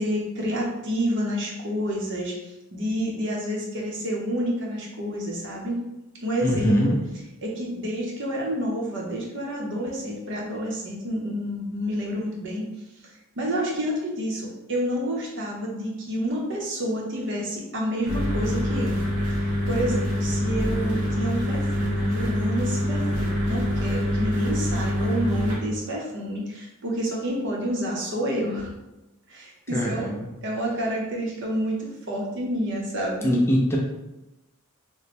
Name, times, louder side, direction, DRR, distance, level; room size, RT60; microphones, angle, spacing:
voice 1, 0.0-5.8 6.2-7.0 7.4-12.7 13.0-19.0 19.4-28.7 29.3-30.1 30.4-33.4, equal, 55° right, -2 dB, 0.8 m, -29 dB
voice 2, 6.4-7.0 29.7-30.3 33.2-33.8, equal, 10° left, -2 dB, 0.4 m, -22 dB
sound 1, 18.1-25.6, left 1 dB, 85° right, 1.0 m, -25 dB
3.0 x 2.1 x 4.1 m, 0.98 s
head